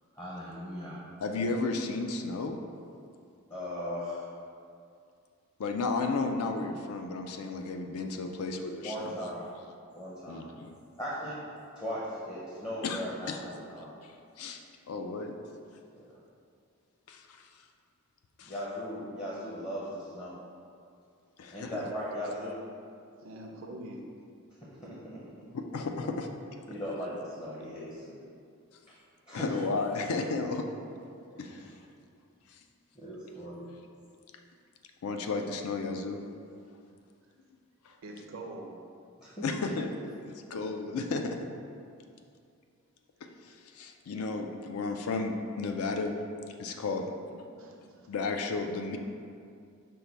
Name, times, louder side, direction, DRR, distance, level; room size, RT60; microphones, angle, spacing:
voice 1, 0.1-1.0 3.5-4.3 8.8-9.5 9.9-10.5 11.0-11.4 11.8-13.9 15.9-16.2 18.4-20.4 21.5-22.6 24.6-25.2 26.7-28.2 28.9-29.0 29.3-29.6 31.5-31.7 33.0-33.7 39.2-39.5, equal, 20° left, -6 dB, 0.6 m, -38 dB
voice 2, 1.2-2.6 5.6-9.1 10.3-10.7 12.8-13.0 13.3-13.4 14.0-14.1 14.4-14.6 14.9-15.3 17.1-17.5 18.4-18.5 21.4-21.9 25.5-26.3 29.3-30.7 31.4-31.8 35.0-36.2 37.9-38.0 39.4-39.9 40.2-41.4 43.2-46.1 46.6-47.1 48.1-49.0, left 3 dB, 90° left, 5 dB, 0.4 m, -33 dB
voice 3, 23.2-24.0 38.0-38.8 47.5-48.1, right 1 dB, 65° right, 0 dB, 0.4 m, -44 dB
5.3 x 2.2 x 4.5 m, 2.4 s
head